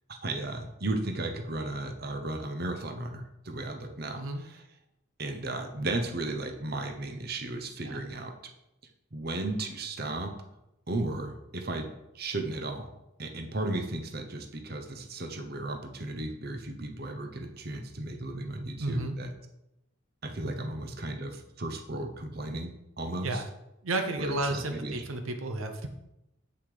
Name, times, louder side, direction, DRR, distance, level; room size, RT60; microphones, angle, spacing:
voice 1, 0.1-4.6 5.2-8.3 9.1-10.3 10.9-12.9 13.2-19.3 20.2-23.4 24.2-25.0, right 2 dB, 45° right, 5 dB, 1.0 m, -35 dB
voice 2, 4.1-4.5 7.8-8.0 18.8-19.2 23.2-23.4 23.8-25.9, right 2 dB, 80° right, 6 dB, 0.8 m, -32 dB
8.1 x 7.1 x 5.1 m, 0.89 s
head